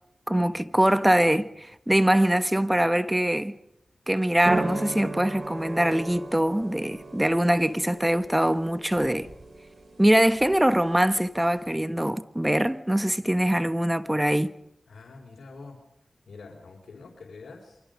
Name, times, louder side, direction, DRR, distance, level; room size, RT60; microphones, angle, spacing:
voice 1, 0.3-3.5 4.1-9.3 10.0-14.5, right 1 dB, 15° right, 1.5 m, -23 dB
sound 1, 4.4-11.7, right 2 dB, 55° right, 3.4 m, -36 dB
voice 2, 14.9-15.8 16.3-17.8, left 4 dB, 85° left, 4.1 m, -45 dB
29.0 x 24.5 x 5.2 m
cardioid pair, 40°, 0 cm